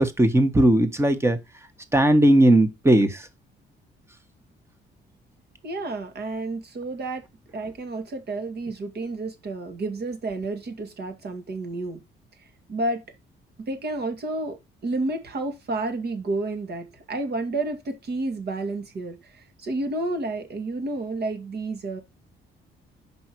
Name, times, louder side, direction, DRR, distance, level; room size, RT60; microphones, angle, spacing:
voice 1, 0.0-1.4 1.9-3.2, right 1 dB, 15° right, 1.2 m, -18 dB
voice 2, 5.6-7.2 7.5-12.0 12.4-13.0 13.7-22.0, right 2 dB, 55° right, 2.0 m, -30 dB
5.5 x 5.4 x 4.6 m
cardioid pair, 90°, 20 cm